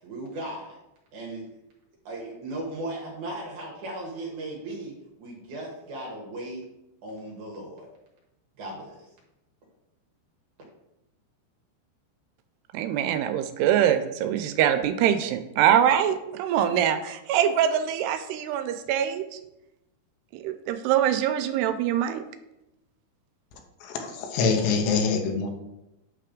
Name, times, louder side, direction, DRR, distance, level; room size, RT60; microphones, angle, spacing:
voice 1, 0.0-0.8 1.1-1.5 2.1-6.6 7.0-7.9 8.6-9.1, right 1 dB, 60° right, -3 dB, 2.3 m, -37 dB
voice 2, 12.7-19.4 20.3-22.2, right 10 dB, 85° right, 9 dB, 2.6 m, -24 dB
voice 3, 23.8-25.5, left 5 dB, 85° left, 4 dB, 3.0 m, -25 dB
8.9 x 3.3 x 5.1 m, 0.91 s
omnidirectional pair, 4.8 m